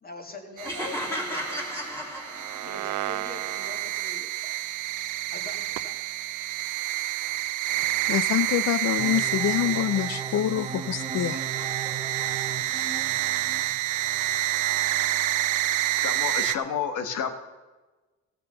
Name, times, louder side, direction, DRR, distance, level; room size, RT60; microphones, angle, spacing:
voice 1, 0.0-2.1 2.6-4.6 5.3-6.0, left 3 dB, 30° left, 2.2 m, -43 dB
sound 1, 0.6-3.0, equal, 10° left, 2.8 m, -34 dB
sound 2, 0.6-16.6, right 15 dB, 85° right, 0.5 m, -29 dB
voice 2, 8.1-11.4, left 12 dB, 60° left, 0.5 m, -26 dB
sound 3, 9.0-14.4, right 5 dB, 20° right, 0.8 m, -37 dB
voice 3, 16.0-17.3, left 7 dB, 80° left, 1.5 m, -30 dB
14.5 x 6.9 x 6.8 m
cardioid pair, 90°, 30 cm